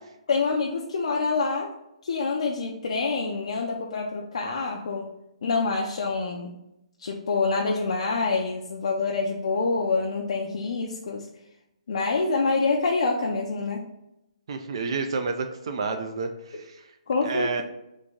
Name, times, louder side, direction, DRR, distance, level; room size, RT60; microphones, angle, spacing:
voice 1, 0.3-1.7 2.0-5.1 5.4-6.5 7.0-11.3 11.9-13.9 17.1-17.6, left 4 dB, 65° left, 0 dB, 0.4 m, -26 dB
voice 2, 14.5-17.0 17.2-17.6, right 4 dB, 50° right, 6 dB, 0.3 m, -30 dB
3.0 x 2.5 x 3.6 m, 0.87 s
hypercardioid pair, 165°, 4 cm